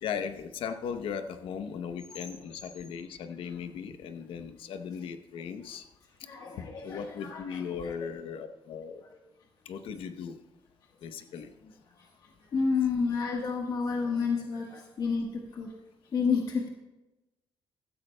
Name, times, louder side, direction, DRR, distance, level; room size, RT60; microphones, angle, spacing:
voice 1, 0.0-5.8 6.8-9.0 9.7-10.4 11.0-11.5, left 7 dB, 80° left, 10 dB, 0.8 m, -37 dB
voice 2, 6.2-7.9 12.5-15.7 16.1-16.7, left 5 dB, 50° left, 1 dB, 1.3 m, -30 dB
15.5 x 13.0 x 2.2 m, 1.0 s
cardioid pair, 165°, 9 cm